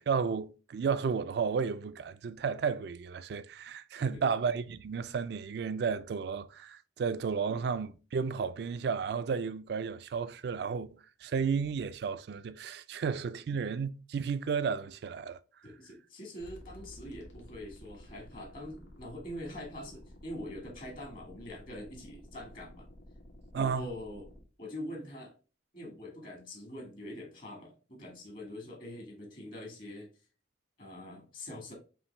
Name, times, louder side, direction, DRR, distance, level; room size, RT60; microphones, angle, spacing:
voice 1, 0.0-10.9 11.2-15.4 23.5-23.8, right 6 dB, 60° right, 0.3 m, -33 dB
voice 2, 15.6-22.9 23.5-24.3 24.6-25.3 25.7-30.1 30.8-31.7, left 1 dB, 50° left, 1.4 m, -44 dB
sound 1, 16.4-24.4, equal, 80° left, 1.5 m, -52 dB
5.6 x 2.6 x 3.2 m
head